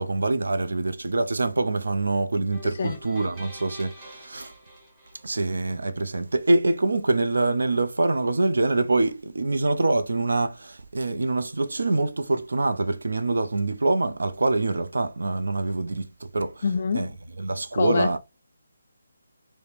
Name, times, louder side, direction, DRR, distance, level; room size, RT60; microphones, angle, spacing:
voice 1, 0.0-4.5 5.2-16.6 16.9-17.1 17.4-18.2, right 2 dB, 75° right, 0.5 m, -25 dB
sound 1, 2.5-5.7, equal, 15° right, 1.7 m, -46 dB
voice 2, 2.6-3.0 16.6-17.2 17.7-18.2, left 5 dB, 50° left, 0.4 m, -26 dB
4.8 x 2.1 x 3.2 m
figure-of-eight pair, 160°, 0 cm